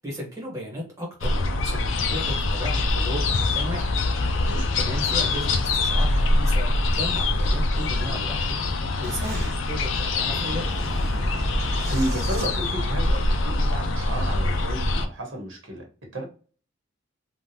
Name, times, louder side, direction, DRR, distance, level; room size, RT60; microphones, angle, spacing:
voice 1, 0.0-3.9 4.3-4.5 4.7-8.6 9.0-10.7, equal, 15° right, 1.1 m, -35 dB
sound 1, 1.2-15.1, left 2 dB, 80° left, 0.5 m, -24 dB
Boom, 9.0-13.4, equal, 55° right, 1.0 m, -31 dB
voice 2, 11.9-15.9 16.1-16.3, right 1 dB, 80° right, 1.3 m, -32 dB
3.5 x 2.4 x 2.7 m
head